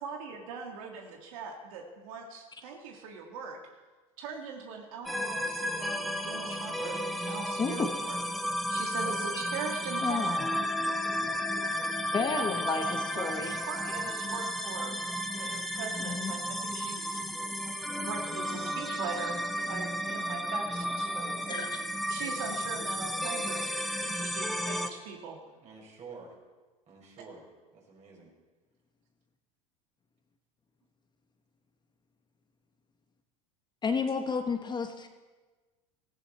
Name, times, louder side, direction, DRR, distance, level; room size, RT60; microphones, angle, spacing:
voice 1, 0.0-3.6 4.2-8.2 8.7-10.5 12.3-12.5 12.7-15.0 15.3-17.1 18.0-21.7 22.1-25.4, right 5 dB, 75° right, 2 dB, 2.0 m, -41 dB
sound 1, 5.1-24.9, equal, ahead, 1.2 m, -33 dB
voice 2, 7.6-7.9 9.3-9.4 10.0-10.5 12.1-13.6 16.0-16.3 17.1-17.2 21.5-21.8 33.8-35.1, left 5 dB, 25° left, 6 dB, 1.3 m, -31 dB
voice 3, 9.0-9.4 12.4-12.8 20.7-21.6 25.4-26.4 26.9-27.5 27.7-28.3, right 4 dB, 40° right, -1 dB, 5.4 m, -49 dB
17.0 x 14.5 x 4.3 m, 1.3 s
hypercardioid pair, 95°, 18 cm